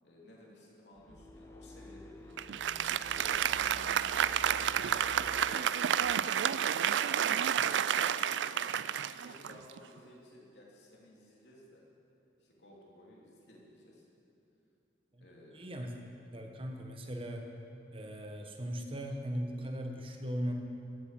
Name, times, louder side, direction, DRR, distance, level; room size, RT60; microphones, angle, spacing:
voice 1, 0.0-3.4 4.4-5.7 6.0-8.7 9.2-11.8 12.4-14.1 15.2-15.7, left 1 dB, 70° left, -4 dB, 3.1 m, -56 dB
sound 1, 0.9-6.2, left 1 dB, 15° left, 0.3 m, -51 dB
Applause, 2.4-10.0, right 9 dB, 85° right, 0.4 m, -30 dB
voice 2, 15.5-15.9 16.3-17.4 17.9-20.5, equal, 30° right, 3 dB, 1.3 m, -38 dB
14.5 x 8.4 x 7.6 m, 2.8 s
head